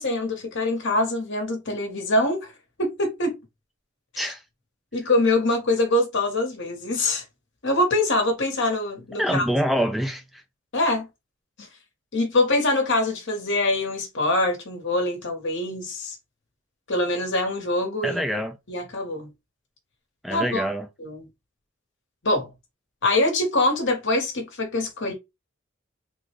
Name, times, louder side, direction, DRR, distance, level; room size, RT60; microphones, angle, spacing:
voice 1, 0.0-2.5 2.8-3.4 4.1-4.3 4.9-7.2 7.6-9.5 10.7-11.1 11.6-11.7 12.1-16.1 16.9-18.2 18.7-19.3 20.3-20.7 21.0-21.3 22.2-22.5 23.0-25.1, left 2 dB, 65° left, 1.4 m, -24 dB
voice 2, 9.2-10.4 18.0-18.5 20.2-20.9, equal, ahead, 0.3 m, -25 dB
3.5 x 2.4 x 3.2 m
head